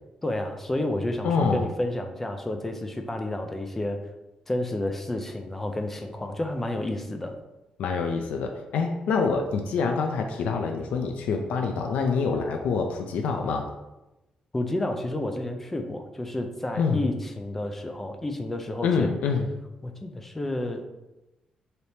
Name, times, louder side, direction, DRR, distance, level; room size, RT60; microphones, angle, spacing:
voice 1, 0.2-4.0 4.5-7.4 14.5-19.1 19.8-20.8, left 1 dB, 10° left, 4 dB, 0.4 m, -30 dB
voice 2, 1.2-1.7 7.8-13.7 16.8-17.0 18.8-19.5, left 5 dB, 85° left, 4 dB, 0.4 m, -26 dB
3.3 x 2.7 x 4.2 m, 0.98 s
wide cardioid pair, 175°, 2 cm